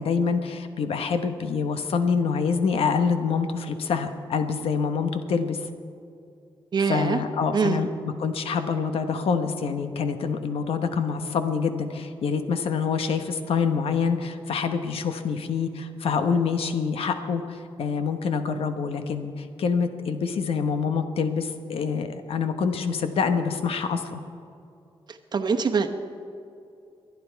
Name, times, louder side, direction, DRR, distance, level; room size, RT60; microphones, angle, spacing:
voice 1, 0.0-5.6 6.9-7.9 8.2-24.2, left 5 dB, 85° left, 8 dB, 1.1 m, -26 dB
voice 2, 6.7-7.2 7.5-7.9 25.1-25.9, right 5 dB, 50° right, 6 dB, 1.0 m, -24 dB
23.5 x 9.5 x 4.6 m, 2.6 s
wide cardioid pair, 120°, 10 cm